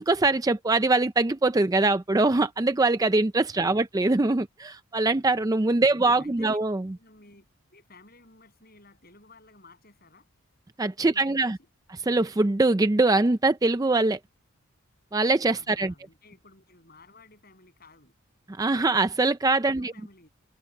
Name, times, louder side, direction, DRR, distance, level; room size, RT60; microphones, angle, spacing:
voice 1, 0.0-6.8 10.8-11.6 12.1-14.2 15.1-15.9 18.6-19.9, right 2 dB, 15° right, 0.4 m, -23 dB
voice 2, 5.8-6.6 6.9-10.3 11.0-11.7 15.5-18.1 19.6-20.3, left 2 dB, 45° left, 8.0 m, -55 dB
open air
head